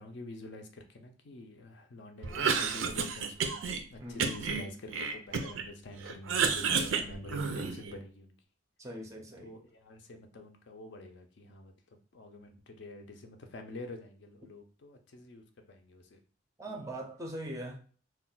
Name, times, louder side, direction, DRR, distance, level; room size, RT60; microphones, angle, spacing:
voice 1, 0.0-3.6 3.9-8.4 9.4-11.7 12.1-16.2 16.7-17.0, left 2 dB, 60° left, 0.4 m, -47 dB
Cough, 2.2-3.8 4.2-5.7 6.0-7.9, right 5 dB, 75° right, 0.4 m, -31 dB
voice 2, 4.0-4.4 8.8-9.5 16.6-17.8, right 1 dB, 15° right, 0.4 m, -41 dB
2.3 x 2.1 x 3.8 m
head